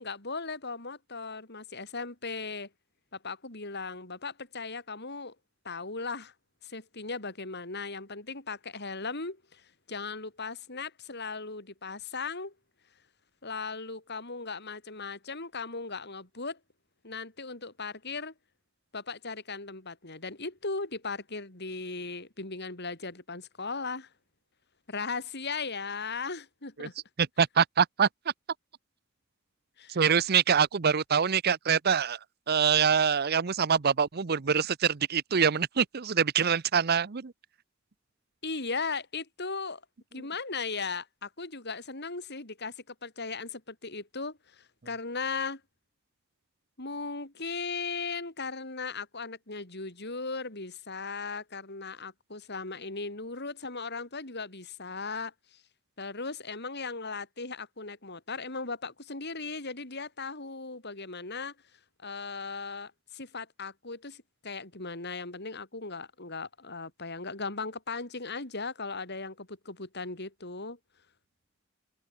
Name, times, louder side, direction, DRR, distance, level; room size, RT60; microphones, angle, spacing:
voice 1, 0.0-2.7 3.2-5.4 5.6-6.3 6.6-12.5 13.4-16.6 17.0-18.3 18.9-24.1 24.9-26.9 29.8-30.0 38.4-39.8 40.1-45.6 46.8-55.6 56.0-61.5 62.0-70.8, left 4 dB, 55° left, 5.7 m, -37 dB
voice 2, 27.4-28.1 29.9-32.2 32.5-37.3, right 7 dB, 50° right, 0.7 m, -25 dB
open air
head